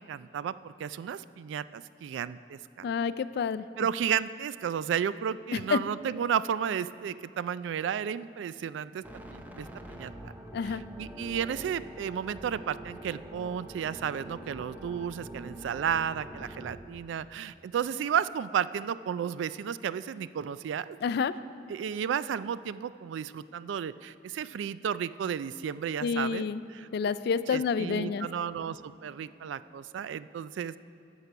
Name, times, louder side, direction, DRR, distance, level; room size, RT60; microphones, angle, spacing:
voice 1, 0.0-2.9 3.8-10.3 10.6-21.0 21.7-26.9 27.5-30.8, right 8 dB, 80° right, 16 dB, 0.3 m, -33 dB
voice 2, 2.8-3.6 5.5-5.8 10.5-10.8 21.0-21.3 26.0-26.6 26.9-28.3, left 5 dB, 60° left, 15 dB, 0.3 m, -28 dB
sound 1, 9.0-16.8, right 1 dB, 10° right, 0.6 m, -45 dB
11.0 x 6.7 x 5.9 m, 3.0 s
head